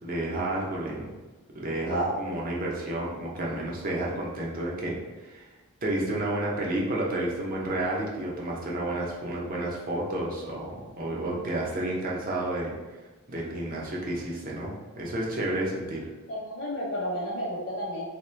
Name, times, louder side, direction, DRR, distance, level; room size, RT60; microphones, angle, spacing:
voice 1, 0.0-1.1 1.5-5.5 5.8-12.7 13.3-16.1, right 1 dB, 40° right, -3 dB, 0.7 m, -31 dB
voice 2, 16.3-18.2, equal, 50° left, -7 dB, 0.7 m, -31 dB
3.0 x 2.9 x 3.2 m, 1.2 s
head